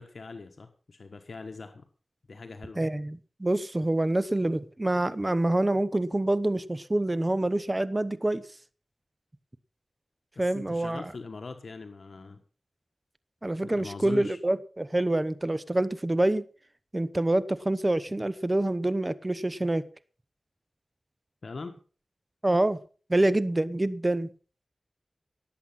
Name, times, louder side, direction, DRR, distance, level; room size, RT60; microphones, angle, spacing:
voice 1, 0.0-1.8 2.3-2.8 10.3-12.4 13.6-14.4 21.4-21.7, left 3 dB, 75° left, 1.4 m, -41 dB
voice 2, 2.8-8.4 10.4-11.1 13.4-16.4 16.9-19.8 22.4-22.8 23.1-24.3, right 1 dB, 30° right, 0.9 m, -26 dB
17.5 x 8.0 x 5.7 m
cardioid pair, 40°, 0 cm